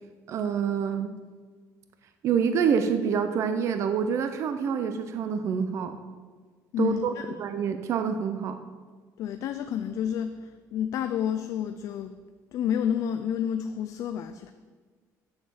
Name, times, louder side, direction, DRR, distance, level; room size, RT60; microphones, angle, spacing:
voice 1, 0.3-1.1 2.2-6.0 6.8-7.1 7.4-8.6, right 7 dB, 45° right, 8 dB, 0.6 m, -27 dB
voice 2, 6.7-7.3 9.2-12.2 12.5-14.5, left 9 dB, 55° left, 8 dB, 0.4 m, -30 dB
7.0 x 6.6 x 7.4 m, 1.5 s
cardioid pair, 175°, 7 cm